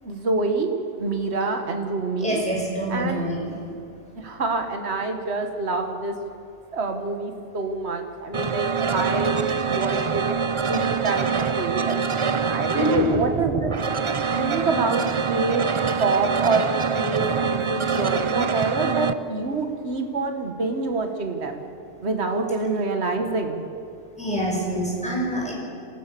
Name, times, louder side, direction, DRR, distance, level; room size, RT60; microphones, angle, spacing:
voice 1, 0.0-0.7 1.0-2.4 2.9-3.3 4.2-6.2 6.7-10.2 10.7-12.1 12.5-13.7 14.4-15.0 15.3-15.7 16.0-21.6 22.0-23.6, right 3 dB, 60° right, 5 dB, 1.9 m, -26 dB
voice 2, 2.2-3.6 12.7-13.0 24.2-25.5, equal, 5° left, -3 dB, 5.7 m, -26 dB
sound 1, 8.3-19.1, right 6 dB, 35° right, 0.5 m, -25 dB
27.0 x 15.5 x 6.9 m, 2.5 s
omnidirectional pair, 1.3 m